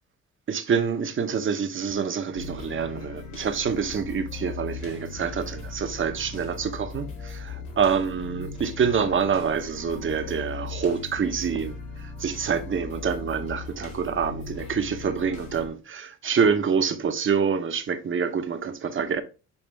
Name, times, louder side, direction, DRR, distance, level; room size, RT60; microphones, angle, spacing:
voice 1, 0.5-19.2, right 6 dB, 40° right, 1.0 m, -26 dB
sound 1, 2.3-15.7, left 4 dB, 90° left, 2.0 m, -38 dB
7.1 x 4.2 x 3.4 m
cardioid pair, 90°, 30 cm